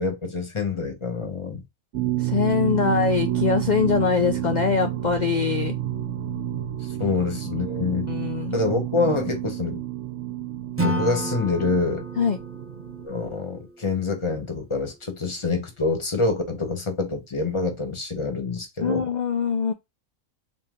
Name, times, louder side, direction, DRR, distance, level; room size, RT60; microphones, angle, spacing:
voice 1, 0.0-1.6 6.8-8.1 8.5-9.8 10.8-12.0 13.0-19.1, left 3 dB, 25° left, 0.9 m, -26 dB
sound 1, 1.9-13.1, right 12 dB, 65° right, 0.9 m, -29 dB
voice 2, 2.2-5.7 7.0-7.2 7.8-8.6 12.2-12.4 18.8-19.7, left 6 dB, 75° left, 0.4 m, -23 dB
Acoustic guitar / Strum, 10.8-13.9, equal, 15° right, 0.5 m, -31 dB
3.8 x 2.7 x 3.7 m
omnidirectional pair, 1.4 m